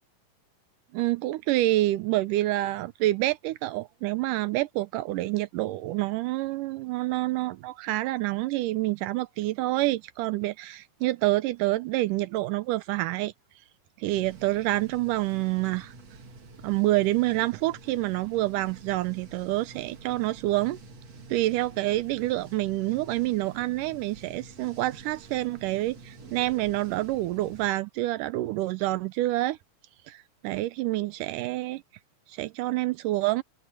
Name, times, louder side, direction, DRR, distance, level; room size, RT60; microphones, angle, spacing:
voice 1, 0.9-13.3 14.0-15.9 16.6-20.8 21.3-29.6 30.1-31.8 32.3-33.4, right 17 dB, 85° right, 2.2 m, -27 dB
sound 1, 14.1-27.7, right 3 dB, 50° right, 3.9 m, -48 dB
omnidirectional pair, 3.8 m